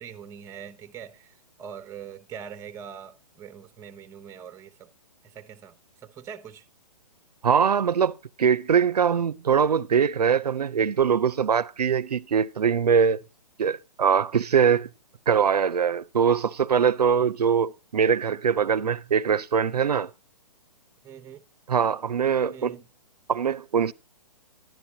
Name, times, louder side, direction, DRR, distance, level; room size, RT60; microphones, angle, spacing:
voice 1, 0.0-4.9 5.2-5.8 6.0-6.6 21.0-21.4 22.5-22.9, right 8 dB, 15° right, 0.7 m, -43 dB
voice 2, 7.4-13.2 13.6-14.9 15.3-20.1 21.7-22.8 23.3-23.9, right 7 dB, 85° right, 0.5 m, -22 dB
11.5 x 10.5 x 2.8 m
hypercardioid pair, 135°, 20 cm